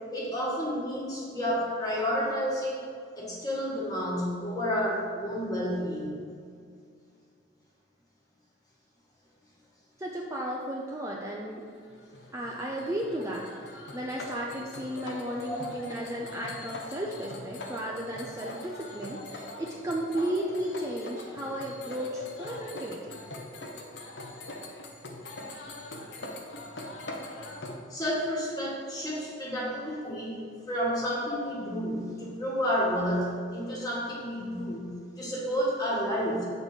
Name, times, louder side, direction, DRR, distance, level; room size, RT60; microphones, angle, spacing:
voice 1, 0.1-2.8 3.2-6.3 15.5-15.6 16.1-16.2 27.9-30.4 30.7-34.9 35.2-36.4, equal, 20° left, -5 dB, 1.6 m, -30 dB
voice 2, 10.0-11.7 12.3-23.2, right 1 dB, 15° right, -2 dB, 0.5 m, -34 dB
sound 1, 11.6-27.8, left 2 dB, 60° left, 0.8 m, -42 dB
7.5 x 4.1 x 4.8 m, 2.2 s
head